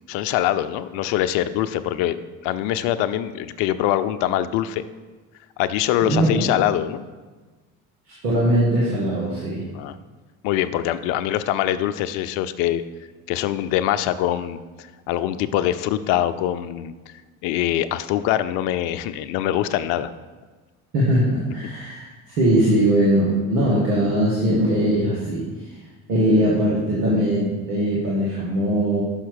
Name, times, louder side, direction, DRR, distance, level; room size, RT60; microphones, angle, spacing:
voice 1, 0.1-2.2 2.4-4.8 5.6-7.0 9.7-9.9 10.4-12.8 13.3-17.1 17.4-20.1, left 12 dB, 70° left, 12 dB, 0.6 m, -23 dB
voice 2, 6.0-6.4 8.1-9.6 20.9-25.7 26.1-29.0, right 1 dB, 85° right, -5 dB, 1.7 m, -20 dB
5.7 x 5.7 x 6.3 m, 1.3 s
hypercardioid pair, 70°, 45 cm